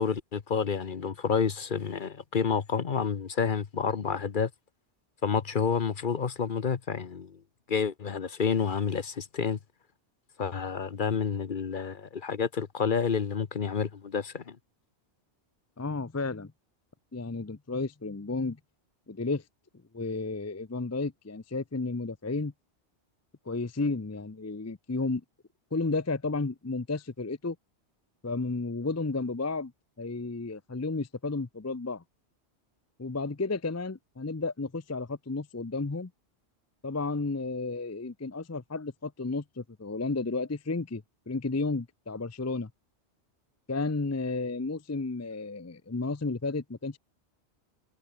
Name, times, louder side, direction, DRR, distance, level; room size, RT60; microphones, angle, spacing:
voice 1, 0.0-4.5 5.2-7.4 7.7-9.6 10.4-14.6, left 6 dB, 50° left, 1.1 m, -29 dB
voice 2, 15.8-16.5 17.1-18.6 19.1-19.4 19.9-22.5 23.5-25.2 25.7-27.6 28.2-29.7 30.0-32.0 33.0-36.1 36.8-42.7 43.7-47.0, left 3 dB, 20° left, 0.6 m, -32 dB
omnidirectional pair, 1.2 m